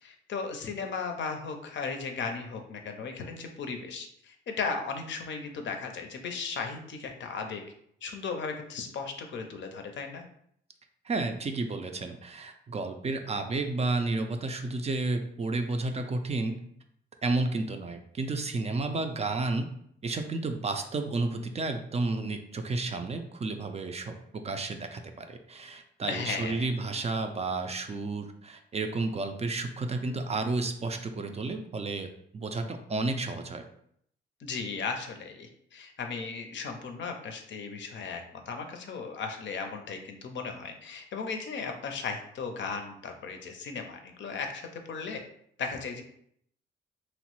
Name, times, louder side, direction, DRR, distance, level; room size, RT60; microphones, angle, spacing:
voice 1, 0.0-7.6 8.0-10.2 26.1-26.7 34.4-45.2 45.6-46.0, left 5 dB, 60° left, 4 dB, 0.5 m, -36 dB
voice 2, 11.0-16.5 17.2-19.7 20.0-32.1 32.3-33.6, right 3 dB, 30° right, 6 dB, 0.3 m, -31 dB
2.9 x 2.0 x 2.9 m, 0.68 s
cardioid pair, 65°, 21 cm